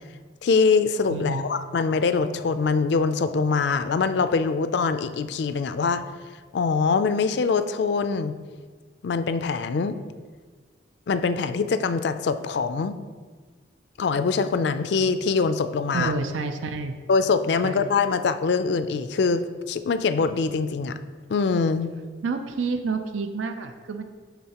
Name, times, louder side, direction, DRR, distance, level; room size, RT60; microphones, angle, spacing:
voice 1, 0.4-6.0 6.5-8.3 9.0-10.0 11.1-12.9 14.0-16.1 17.1-21.0 21.3-21.9, left 4 dB, 65° left, 11 dB, 0.4 m, -23 dB
voice 2, 1.1-1.4 15.9-17.0 17.6-17.9 22.2-24.0, right 4 dB, 85° right, 7 dB, 0.5 m, -29 dB
12.0 x 3.9 x 2.9 m, 1.5 s
head